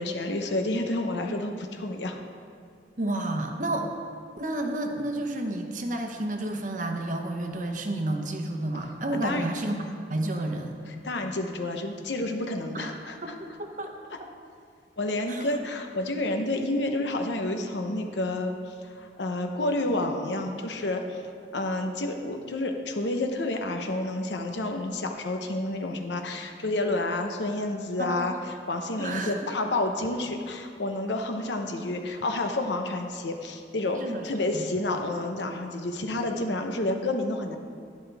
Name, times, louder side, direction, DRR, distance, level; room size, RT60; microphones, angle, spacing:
voice 1, 0.0-2.2 9.1-9.5 10.9-13.3 15.0-18.6 18.8-21.2 21.5-37.6, left 2 dB, 80° left, 4 dB, 0.9 m, -29 dB
voice 2, 3.0-3.9 4.4-9.7 10.1-10.7 12.7-14.3 15.3-15.6 28.0-28.3 29.0-29.5 34.0-34.2 34.5-34.7, right 1 dB, 45° right, 3 dB, 1.0 m, -31 dB
11.5 x 11.0 x 3.5 m, 2.2 s
head